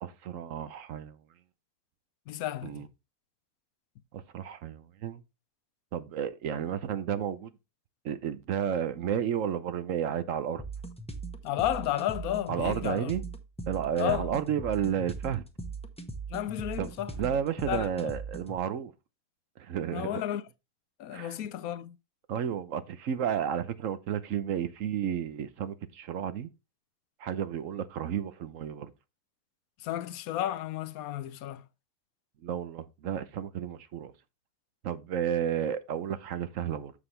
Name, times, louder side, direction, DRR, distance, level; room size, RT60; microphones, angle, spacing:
voice 1, 0.0-1.2 2.6-2.9 4.1-5.2 5.9-7.5 8.0-10.6 12.5-13.2 13.7-15.4 16.8-18.9 19.6-20.2 21.1-21.4 22.3-26.5 27.2-28.9 32.4-34.1 34.8-36.9, right 9 dB, 70° right, 1.1 m, -32 dB
voice 2, 2.3-2.8 11.4-13.1 14.0-14.3 16.3-17.1 17.7-18.1 19.9-20.4 21.0-22.0 29.8-31.7, left 12 dB, 85° left, 1.1 m, -32 dB
sound 1, 10.6-18.6, right 3 dB, 5° left, 0.8 m, -40 dB
7.2 x 6.8 x 3.3 m
omnidirectional pair, 1.5 m